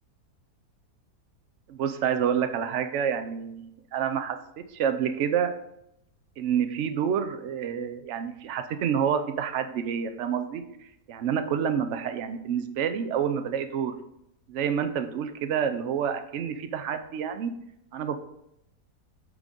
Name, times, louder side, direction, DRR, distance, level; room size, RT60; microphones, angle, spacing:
voice 1, 1.7-4.4 4.7-5.5 6.4-10.6 11.1-13.9 14.5-17.5 17.9-18.2, right 8 dB, 60° right, 9 dB, 0.8 m, -28 dB
8.1 x 3.8 x 5.3 m, 0.79 s
omnidirectional pair, 1.8 m